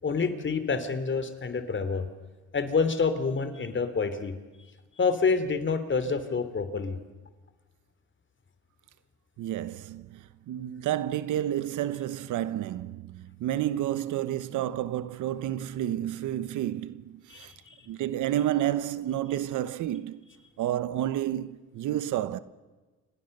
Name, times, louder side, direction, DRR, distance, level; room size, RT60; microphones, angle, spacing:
voice 1, 0.0-2.0 2.5-4.3 5.0-7.0 17.3-17.8, left 5 dB, 40° left, 3.1 m, -27 dB
voice 2, 9.4-17.5 17.9-20.2 20.6-22.4, right 12 dB, 80° right, 1.0 m, -30 dB
29.0 x 25.0 x 6.7 m
cardioid pair, 90°, 30 cm